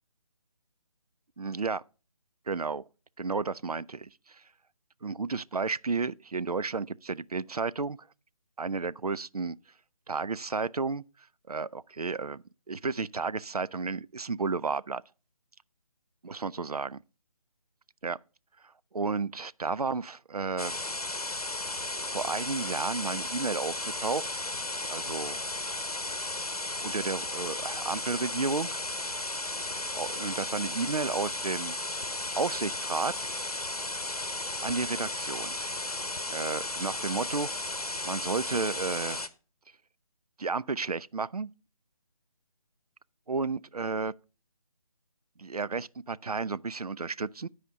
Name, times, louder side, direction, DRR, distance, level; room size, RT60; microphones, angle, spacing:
voice 1, 1.4-1.8 2.5-2.8 3.2-4.4 5.0-8.0 8.6-9.6 10.1-11.0 11.5-15.0 16.3-17.0 18.0-18.2 18.9-20.7 22.1-24.2 24.9-25.4 26.8-28.8 29.9-31.7 32.4-33.3 34.6-35.6 36.3-37.5 38.0-39.3 40.4-41.5 43.3-44.1 45.4-47.5, right 4 dB, 85° right, 0.4 m, -32 dB
sound 1, 20.6-39.3, left 2 dB, 90° left, 0.8 m, -34 dB
11.5 x 5.0 x 5.4 m
figure-of-eight pair, 150°, 19 cm